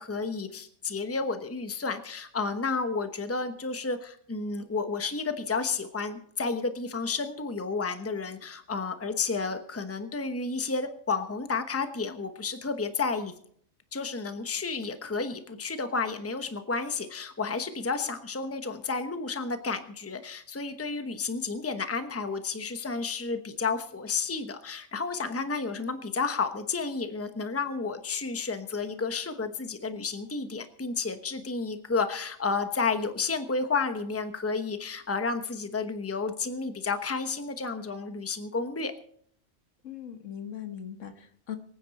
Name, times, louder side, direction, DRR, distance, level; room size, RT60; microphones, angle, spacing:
voice 1, 0.0-13.3 13.9-38.9, left 4 dB, 10° left, 8 dB, 0.9 m, -31 dB
voice 2, 39.8-41.6, left 9 dB, 75° left, 7 dB, 1.7 m, -40 dB
23.5 x 9.6 x 4.2 m, 0.63 s
omnidirectional pair, 1.3 m